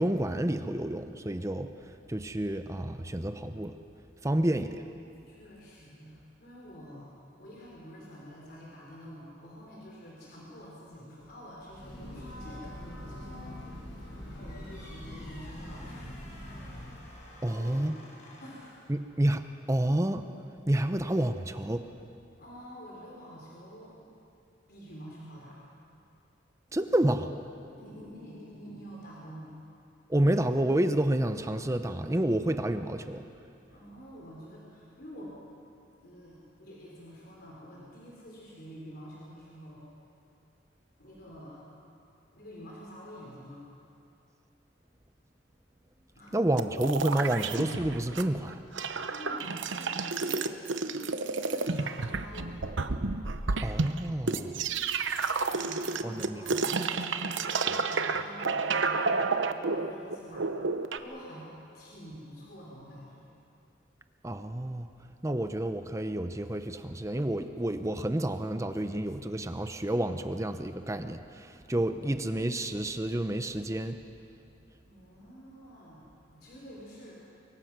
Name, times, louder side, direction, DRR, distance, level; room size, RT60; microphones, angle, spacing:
voice 1, 0.0-1.7 2.1-3.7 4.2-4.8 17.4-17.9 18.9-20.2 20.7-21.9 26.7-27.3 30.1-33.2 46.3-48.6 53.6-54.7 56.0-56.4 64.2-64.9 65.2-74.0, right 1 dB, 15° right, 8 dB, 0.7 m, -29 dB
voice 2, 4.9-7.1 7.4-16.2 17.4-17.9 18.4-18.8 22.4-24.0 24.7-25.6 27.8-29.6 33.7-35.4 36.0-39.8 41.0-41.6 42.3-43.6 46.2-46.4 49.1-52.7 55.5-60.5 61.0-63.3 74.8-76.1 76.3-77.1, equal, 55° left, -4 dB, 4.1 m, -47 dB
Breathing / Train, 11.5-17.1, left 1 dB, 70° left, 5.6 m, -43 dB
sound 1, 14.4-18.9, left 1 dB, 40° left, 5.9 m, -53 dB
sound 2, 46.6-48.2 48.5-61.0, right 4 dB, 80° right, 0.9 m, -30 dB
24.0 x 23.0 x 6.1 m, 2.6 s
head